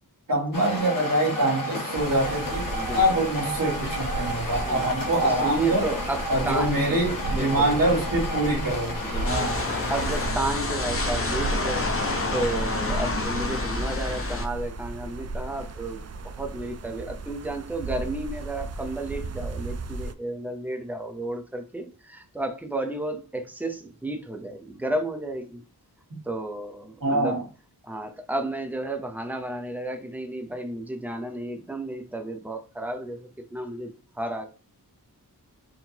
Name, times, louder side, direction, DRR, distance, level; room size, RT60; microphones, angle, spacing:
voice 1, 0.3-5.9 6.3-8.9 9.2-9.6 27.0-27.4, right 1 dB, 60° right, -3 dB, 2.0 m, -25 dB
sound 1, 0.5-10.3, left 1 dB, 60° left, 1.4 m, -32 dB
sound 2, 1.9-20.1, right 3 dB, 45° right, 0.4 m, -34 dB
voice 2, 2.7-3.2 4.6-4.9 5.2-7.0 7.3-7.8 9.0-11.8 12.3-25.6 26.3-27.4 27.8-34.5, right 2 dB, 5° right, 5 dB, 0.8 m, -32 dB
sound 3, 9.3-14.5, left 3 dB, 35° left, 0.7 m, -29 dB
4.6 x 3.6 x 2.9 m, 0.35 s
wide cardioid pair, 70°, 38 cm